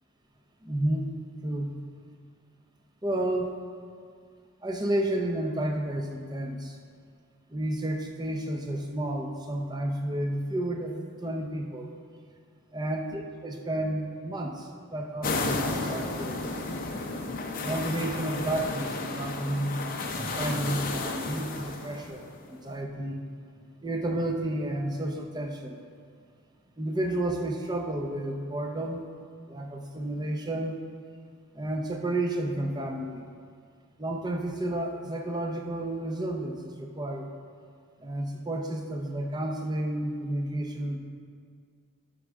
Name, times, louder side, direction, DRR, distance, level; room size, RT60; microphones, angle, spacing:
voice 1, 0.6-1.0 1.4-1.7 3.0-3.6 4.6-6.8 7.5-11.9 12.7-16.4 17.5-23.2 23.8-25.8 26.8-29.0 29.5-30.7 31.5-33.3 34.0-37.3 38.0-41.0, right 1 dB, 20° right, 2 dB, 0.7 m, -31 dB
sound 1, 15.2-22.6, left 3 dB, 40° left, 0.6 m, -33 dB
11.0 x 6.4 x 3.6 m, 2.1 s
head